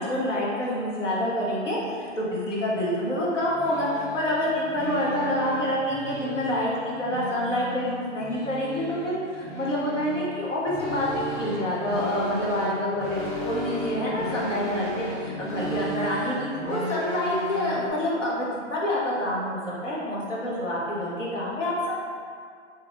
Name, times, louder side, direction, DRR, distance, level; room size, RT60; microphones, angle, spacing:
voice 1, 0.0-22.0, left 1 dB, 90° left, -5 dB, 1.1 m, -27 dB
sound 1, 2.7-17.9, equal, 10° left, 0.9 m, -35 dB
3.7 x 3.1 x 3.0 m, 2.2 s
hypercardioid pair, 125°, 36 cm